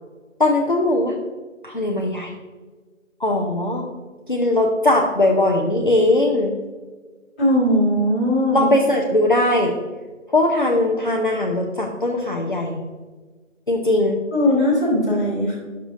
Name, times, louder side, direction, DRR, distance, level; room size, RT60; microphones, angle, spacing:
voice 1, 0.4-1.1 1.6-2.3 3.2-3.8 4.3-6.5 8.5-9.7 10.3-12.8 13.7-14.2, left 1 dB, 40° left, 0 dB, 0.6 m, -19 dB
voice 2, 7.4-8.7 14.3-15.5, equal, 5° left, -13 dB, 1.1 m, -19 dB
9.6 x 6.6 x 2.6 m, 1.4 s
figure-of-eight pair, 155°, 38 cm